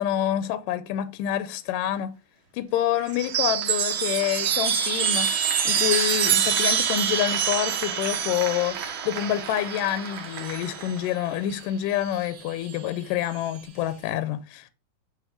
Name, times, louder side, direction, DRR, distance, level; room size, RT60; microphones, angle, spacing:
voice 1, 0.0-2.1 2.5-5.3 5.7-8.8 9.1-14.7, left 11 dB, 80° left, 2.2 m, -27 dB
Applause, 3.0-12.0, right 6 dB, 85° right, 1.1 m, -37 dB
Chime, 3.1-10.9 12.1-12.8, right 8 dB, 60° right, 1.6 m, -26 dB
9.3 x 3.8 x 5.2 m
omnidirectional pair, 4.0 m